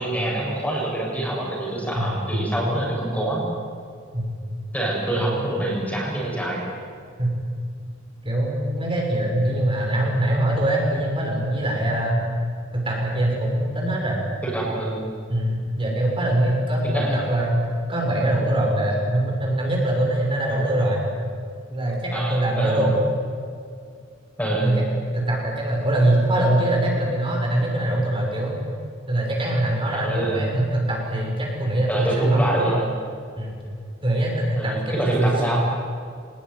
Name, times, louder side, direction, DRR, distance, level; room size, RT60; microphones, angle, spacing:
voice 1, 0.0-3.4 4.7-6.6 14.4-15.0 16.8-17.2 22.1-22.8 24.4-24.7 30.0-30.4 31.9-32.9 34.6-35.6, right 1 dB, 10° left, -4 dB, 7.7 m, -25 dB
voice 2, 1.9-2.3 4.1-4.3 5.2-5.4 7.2-7.3 8.2-12.2 12.7-14.3 15.3-17.6 17.9-21.1 21.7-23.0 24.6-24.8 25.1-28.6 29.1-32.6 33.4-33.6 34.0-34.7 35.2-35.6, right 1 dB, 25° right, -1 dB, 6.4 m, -23 dB
24.5 x 21.0 x 9.6 m, 2.2 s
head